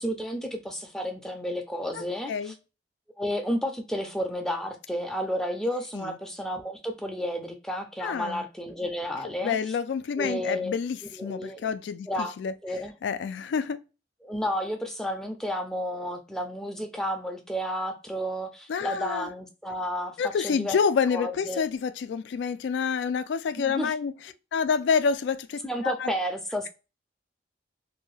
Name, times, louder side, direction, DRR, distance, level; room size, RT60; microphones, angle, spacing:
voice 1, 0.0-2.5 3.2-9.6 10.2-10.7 11.2-11.6 12.1-12.3 12.6-12.9 14.2-20.8 21.1-21.6 23.6-23.9 25.6-26.7, equal, 5° left, 0.4 m, -31 dB
voice 2, 1.9-2.5 5.9-6.2 8.0-8.4 9.4-12.5 13.0-13.8 18.7-19.3 20.2-24.1 24.5-26.1, left 6 dB, 80° left, 0.3 m, -28 dB
2.6 x 2.2 x 3.1 m
head